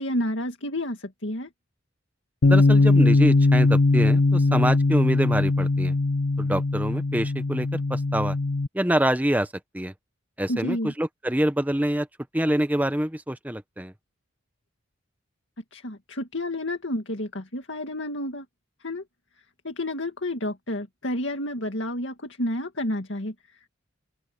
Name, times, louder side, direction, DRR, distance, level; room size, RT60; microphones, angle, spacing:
voice 1, 0.0-1.5 10.5-10.9 15.7-18.5 18.8-19.0 19.6-23.7, left 1 dB, 65° left, 2.2 m, -30 dB
Bass guitar, 2.4-8.7, left 2 dB, 80° left, 0.7 m, -20 dB
voice 2, 2.4-5.9 6.4-8.4 8.7-9.5 9.7-9.9 10.4-12.1 12.3-13.9, right 1 dB, 10° right, 1.0 m, -26 dB
open air
head